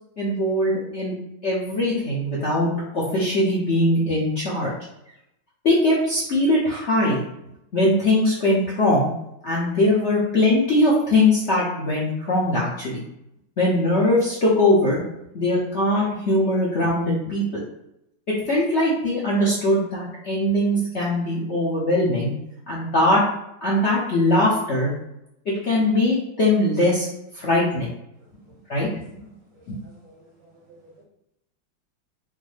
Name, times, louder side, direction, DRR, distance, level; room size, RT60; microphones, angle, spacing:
voice 1, 0.2-1.1 1.4-4.7 5.6-7.2 7.7-9.1 9.4-13.0 13.6-15.0 15.3-17.4 18.3-22.3 22.7-23.2 23.6-24.9 25.5-27.1 27.3-27.9 28.7-28.9, left 1 dB, 55° left, -6 dB, 0.8 m, -21 dB
voice 2, 29.5-31.0, right 2 dB, 60° right, -3 dB, 0.9 m, -53 dB
5.3 x 2.1 x 3.3 m, 0.83 s
omnidirectional pair, 2.1 m